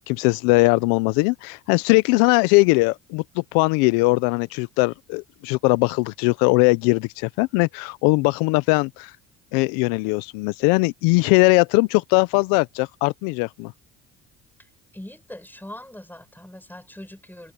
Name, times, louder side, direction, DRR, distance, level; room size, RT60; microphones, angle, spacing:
voice 1, 0.1-9.1 9.5-13.7, left 25 dB, 80° left, 0.7 m, -20 dB
voice 2, 14.9-17.5, left 1 dB, 5° left, 7.9 m, -41 dB
supercardioid pair, 75°, 34 cm